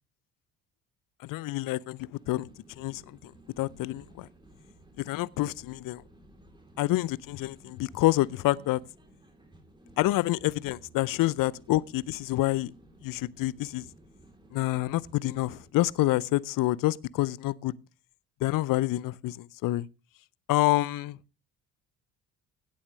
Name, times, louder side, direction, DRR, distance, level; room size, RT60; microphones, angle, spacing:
voice 1, 1.2-2.5 2.8-3.3 3.6-4.3 5.0-6.0 6.8-8.8 10.0-12.7 13.0-13.9 14.5-17.7 18.4-19.9 20.5-21.2, left 17 dB, 50° left, 0.6 m, -27 dB
sound 1, 2.1-15.7, right 1 dB, 10° right, 3.3 m, -56 dB
17.0 x 8.5 x 3.2 m
hypercardioid pair, 50°, 45 cm